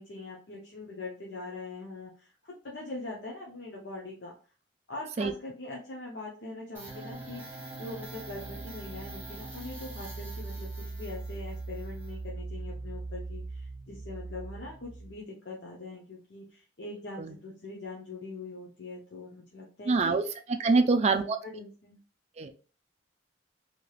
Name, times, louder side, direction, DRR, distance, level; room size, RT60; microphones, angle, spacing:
voice 1, 0.0-4.3 4.9-20.2 20.7-22.0, left 2 dB, 65° left, -2 dB, 0.7 m, -42 dB
sound 1, 6.7-15.2, right 3 dB, 10° right, 1.1 m, -40 dB
voice 2, 19.9-20.2 20.5-21.4 22.4-22.5, right 4 dB, 35° right, 8 dB, 0.3 m, -25 dB
3.2 x 2.9 x 2.3 m, 0.37 s
head